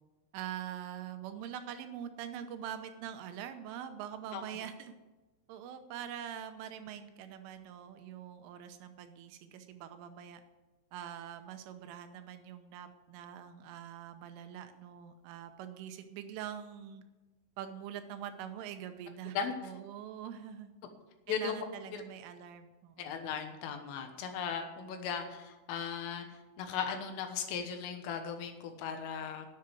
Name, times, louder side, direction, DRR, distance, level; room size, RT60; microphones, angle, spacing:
voice 1, 0.3-4.9 5.5-10.4 10.9-17.0 17.6-19.4 19.6-20.7 21.3-23.2, right 10 dB, 85° right, 8 dB, 3.3 m, -44 dB
voice 2, 21.3-21.7 23.0-26.3 26.6-29.5, left 7 dB, 80° left, 6 dB, 3.8 m, -37 dB
10.5 x 7.9 x 8.1 m, 1.1 s
omnidirectional pair, 5.8 m